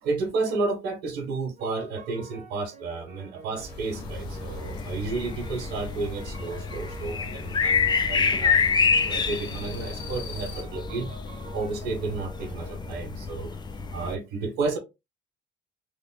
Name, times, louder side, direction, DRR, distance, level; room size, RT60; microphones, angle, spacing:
voice 1, 0.0-8.6 8.9-11.1 11.5-13.5 13.9-14.8, right 3 dB, 90° right, 1.2 m, -31 dB
sound 1, 1.6-13.1, right 4 dB, 45° right, 0.8 m, -47 dB
sound 2, 3.5-10.6, left 1 dB, 85° left, 0.9 m, -41 dB
sound 3, 3.9-14.2, left 5 dB, 25° left, 0.5 m, -28 dB
3.3 x 2.1 x 3.9 m
cardioid pair, 110°, 17 cm